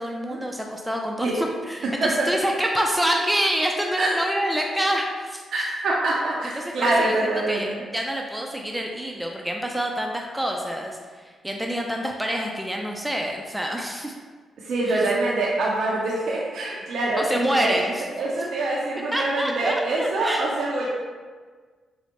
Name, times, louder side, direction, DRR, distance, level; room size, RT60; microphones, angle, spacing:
voice 1, 0.0-5.7 6.6-14.1 14.9-15.0 17.2-18.1 19.1-20.5, equal, 10° right, 1 dB, 0.4 m, -27 dB
voice 2, 5.5-7.8 14.6-17.8 18.2-20.9, right 2 dB, 70° right, -4 dB, 0.5 m, -25 dB
4.4 x 2.0 x 2.8 m, 1.5 s
supercardioid pair, 50°, 0 cm